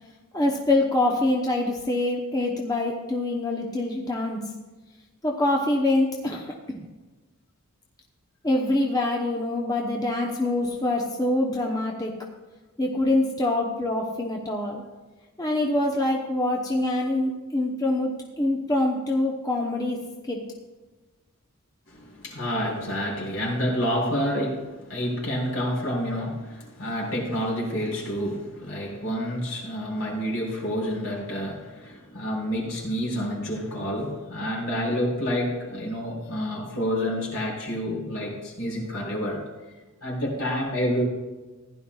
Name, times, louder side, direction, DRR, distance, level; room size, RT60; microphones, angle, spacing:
voice 1, 0.3-4.4 5.2-6.8 8.4-12.1 12.8-14.8 15.4-20.0 20.3-20.4, left 2 dB, 15° left, -1 dB, 0.9 m, -25 dB
voice 2, 21.9-39.4 40.0-41.1, equal, 70° left, -3 dB, 3.7 m, -28 dB
15.0 x 11.0 x 2.4 m, 1.2 s
head